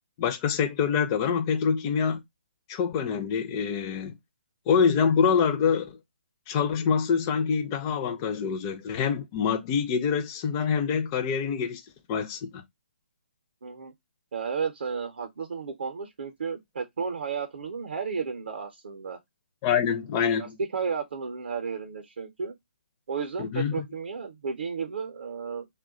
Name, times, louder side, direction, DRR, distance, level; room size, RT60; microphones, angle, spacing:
voice 1, 0.2-2.2 2.7-4.2 4.7-5.9 6.5-11.8 12.1-12.6 19.6-20.6 23.4-23.8, left 6 dB, 25° left, 0.4 m, -25 dB
voice 2, 13.6-13.9 14.3-19.2 20.4-22.6 23.1-25.7, right 5 dB, 60° right, 0.6 m, -33 dB
2.3 x 2.2 x 3.6 m
figure-of-eight pair, 140°, 6 cm